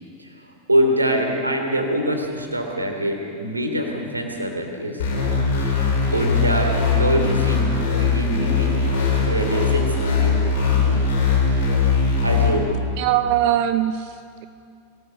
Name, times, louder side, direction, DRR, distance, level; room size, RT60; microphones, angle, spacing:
voice 1, 0.2-5.1 5.6-9.0 9.2-11.0 12.2-12.7, equal, 85° right, 3 dB, 3.0 m, -25 dB
sound 1, 5.0-12.5, left 4 dB, 60° left, 4.6 m, -20 dB
voice 2, 13.0-14.4, right 11 dB, 45° right, 12 dB, 0.6 m, -21 dB
24.0 x 17.5 x 6.8 m, 2.4 s
figure-of-eight pair, 90°, 0 cm